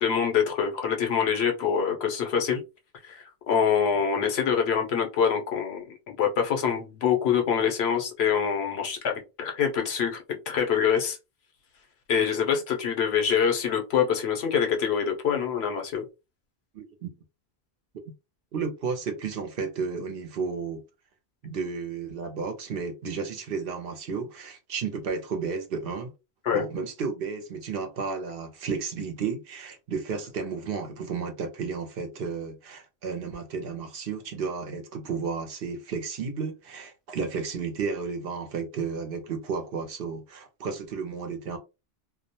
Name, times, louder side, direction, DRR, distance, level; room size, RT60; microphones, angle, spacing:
voice 1, 0.0-2.6 3.0-11.2 12.1-16.0 26.4-26.6, left 7 dB, 85° left, 0.9 m, -25 dB
voice 2, 16.7-17.1 18.5-20.8 21.4-26.1 26.5-41.6, right 5 dB, 65° right, 0.8 m, -32 dB
2.3 x 2.1 x 2.7 m
omnidirectional pair, 1.1 m